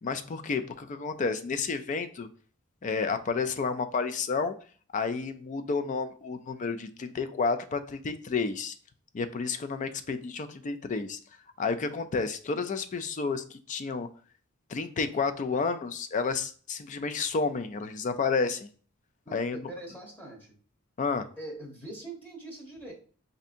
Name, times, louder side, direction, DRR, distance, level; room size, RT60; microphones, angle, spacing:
voice 1, 0.0-2.3 2.8-4.6 4.9-8.8 9.1-11.2 11.6-14.1 14.7-18.7 19.3-19.7 21.0-21.3, left 4 dB, 35° left, 10 dB, 0.3 m, -30 dB
voice 2, 19.2-20.5 21.4-22.9, right 2 dB, 10° left, -1 dB, 1.0 m, -43 dB
5.3 x 2.7 x 2.5 m, 0.42 s
head